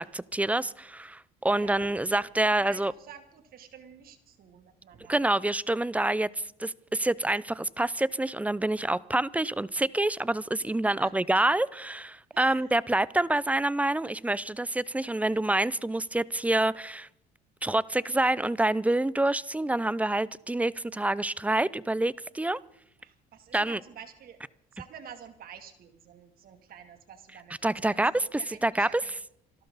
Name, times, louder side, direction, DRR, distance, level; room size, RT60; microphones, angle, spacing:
voice 1, 0.0-2.9 5.1-6.3 6.6-17.1 17.6-22.6 23.5-23.8 27.6-29.0, right 2 dB, 10° right, 0.5 m, -27 dB
voice 2, 1.6-5.4 9.4-9.5 10.8-11.1 12.3-12.7 15.0-15.3 23.0-24.4 24.7-29.1, right 8 dB, 60° right, 2.7 m, -49 dB
26.5 x 12.5 x 4.0 m
cardioid pair, 110°, 17 cm